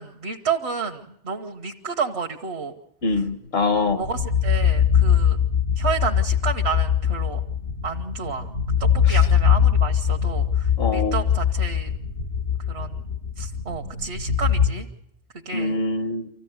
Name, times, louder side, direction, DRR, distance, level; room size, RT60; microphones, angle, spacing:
voice 1, 0.0-2.7 3.8-5.4 5.8-7.4 7.8-8.5 8.8-11.9 12.7-13.0 13.4-14.9 15.4-15.8, right 5 dB, 70° right, 3 dB, 1.4 m, -30 dB
voice 2, 3.0-4.0 9.0-9.3 10.8-11.2 15.5-16.3, left 3 dB, 65° left, 10 dB, 1.3 m, -24 dB
sound 1, 3.6-14.7, left 8 dB, 90° left, 2.3 m, -21 dB
25.5 x 15.0 x 9.4 m, 0.78 s
omnidirectional pair, 1.2 m